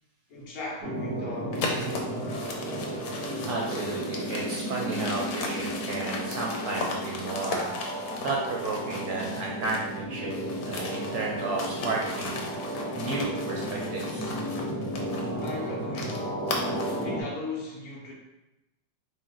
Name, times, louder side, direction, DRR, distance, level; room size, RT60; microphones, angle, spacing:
voice 1, 0.3-2.4 15.0-16.4 17.0-18.1, left 2 dB, 60° left, -4 dB, 1.3 m, -38 dB
sound 1, 0.8-17.2, equal, 40° right, 0.9 m, -34 dB
sound 2, 1.5-10.0 10.3-17.1, left 3 dB, 85° left, 1.4 m, -37 dB
voice 2, 3.4-7.7 8.2-12.4 12.9-14.3, right 3 dB, 65° right, -2 dB, 1.0 m, -33 dB
4.4 x 3.0 x 3.8 m, 0.98 s
omnidirectional pair, 2.0 m